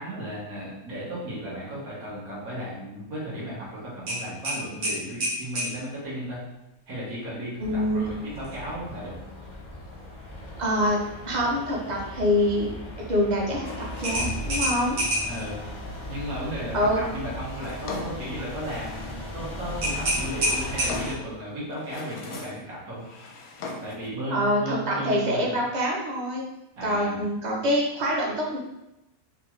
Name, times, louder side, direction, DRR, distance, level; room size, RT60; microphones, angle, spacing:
voice 1, 0.0-6.4 6.9-9.2 15.2-15.6 16.1-23.0 23.8-25.4 26.8-27.2, equal, 85° right, -6 dB, 1.8 m, -35 dB
sound 1, 4.1-5.7 8.3-8.6 9.0-9.1 14.0-15.4 19.8-21.2, right 1 dB, 70° right, 1.6 m, -27 dB
sound 2, 7.6-21.1, left 1 dB, 45° left, 0.3 m, -37 dB
voice 2, 7.6-8.0 10.6-12.7 13.0-15.0 16.7-17.0 24.3-26.4 26.8-28.6, equal, 45° right, -2 dB, 0.5 m, -25 dB
Drawer open or close, 17.4-19.3 20.1-21.3 21.7-22.7 22.9-24.1, left 3 dB, 85° left, 1.1 m, -39 dB
4.5 x 2.4 x 3.0 m, 0.92 s
omnidirectional pair, 1.5 m